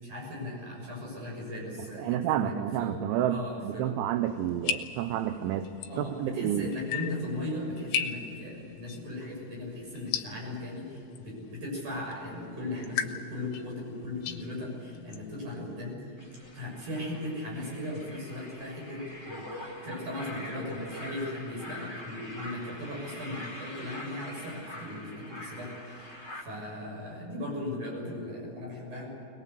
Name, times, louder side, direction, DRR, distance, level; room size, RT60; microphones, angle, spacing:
voice 1, 0.0-3.0 3.3-4.0 5.9-16.1 16.5-29.1, left 1 dB, 40° right, -1 dB, 7.9 m, -37 dB
voice 2, 2.0-5.7 6.0-6.7, right 11 dB, 80° right, 9 dB, 3.0 m, -30 dB
sound 1, 4.3-15.9, left 8 dB, 80° left, 3.3 m, -39 dB
sound 2, 16.2-26.4, left 1 dB, 10° right, 1.3 m, -44 dB
21.5 x 21.0 x 8.2 m, 2.6 s
omnidirectional pair, 5.6 m